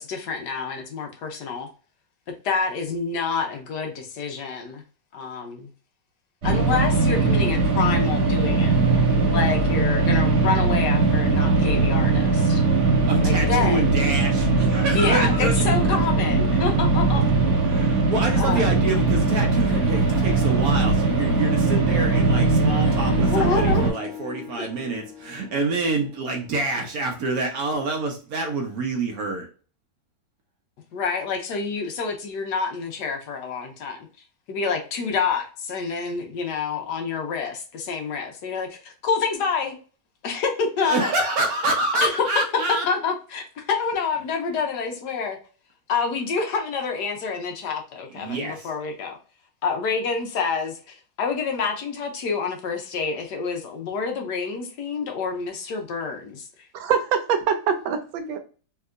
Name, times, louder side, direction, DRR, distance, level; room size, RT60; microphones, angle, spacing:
voice 1, 0.0-1.7 2.4-4.8 5.1-5.7 6.4-8.7 9.3-12.6 13.2-13.9 14.9-17.2 18.3-18.7 23.3-23.9 24.5-24.7 30.9-34.1 34.5-39.8 40.2-41.1 41.9-42.3 42.9-45.4 45.9-49.2 49.6-56.5, left 5 dB, 70° left, 1.1 m, -27 dB
sound 1, 6.4-23.9, right 3 dB, 40° right, 1.4 m, -20 dB
voice 2, 13.1-15.5 17.7-29.5 40.8-42.9 48.2-48.7, right 2 dB, 65° right, 0.9 m, -27 dB
Harp, 19.3-27.9, left 8 dB, 45° left, 1.5 m, -40 dB
voice 3, 56.7-58.4, right 7 dB, 85° right, 1.4 m, -24 dB
3.3 x 2.8 x 2.4 m
omnidirectional pair, 2.0 m